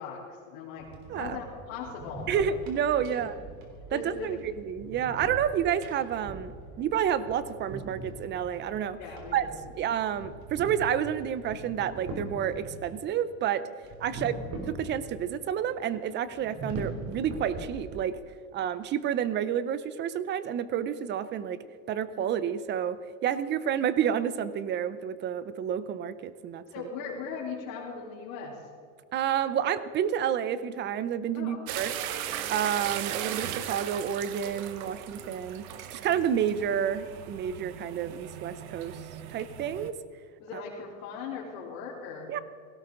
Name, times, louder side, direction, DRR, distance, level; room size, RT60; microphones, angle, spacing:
voice 1, 0.0-2.5 3.1-3.2 3.9-4.3 9.0-9.6 14.1-14.3 26.7-28.6 31.3-31.8 40.4-42.3, left 5 dB, 85° left, -6 dB, 3.5 m, -39 dB
sound 1, 0.8-13.0 13.8-15.3 15.6-15.7 16.3-18.2, right 2 dB, 40° right, 3.3 m, -42 dB
voice 2, 2.3-3.3 3.9-9.0 9.3-9.5 9.8-13.6 14.0-14.4 14.7-18.2 18.5-21.6 21.9-26.6 29.1-31.9 32.5-39.0 39.3-40.0 42.3-42.4, right 9 dB, 25° right, 15 dB, 0.6 m, -30 dB
sound 2, 31.7-39.9, right 10 dB, 80° right, 1.2 m, -37 dB
17.5 x 16.5 x 3.8 m, 2.1 s
supercardioid pair, 145°, 41 cm